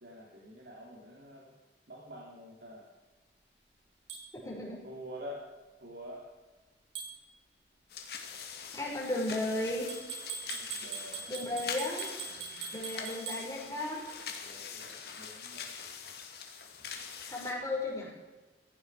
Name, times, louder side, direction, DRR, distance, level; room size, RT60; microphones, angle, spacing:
voice 1, 0.0-1.5 1.9-2.9 4.8-5.4 5.8-6.2 10.5-11.7 12.3-12.8 14.2-15.7, equal, 70° right, -4 dB, 3.1 m, -48 dB
sound 1, 4.1-4.2 7.0-7.2 9.9-13.4, right 6 dB, 90° right, 6.2 m, -41 dB
voice 2, 4.3-4.8 8.7-9.9 11.3-12.1 12.7-14.0 17.3-18.1, left 1 dB, 20° left, -4 dB, 5.6 m, -35 dB
sound 2, 7.9-17.5, left 6 dB, 60° left, 2.3 m, -44 dB
16.5 x 16.0 x 4.9 m, 1.2 s
head